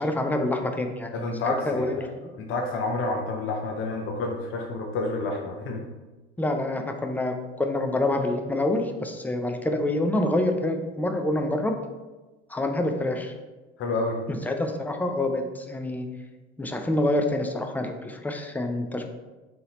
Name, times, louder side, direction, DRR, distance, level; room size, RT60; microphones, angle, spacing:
voice 1, 0.0-1.1 1.4-2.0 6.4-11.8 12.5-13.3 14.3-16.1 16.6-19.1, left 1 dB, 5° left, 5 dB, 0.4 m, -27 dB
voice 2, 1.1-2.0 2.3-5.8 13.8-14.2, left 2 dB, 40° left, 1 dB, 0.8 m, -29 dB
3.9 x 3.0 x 3.8 m, 1.2 s
hypercardioid pair, 75°, 33 cm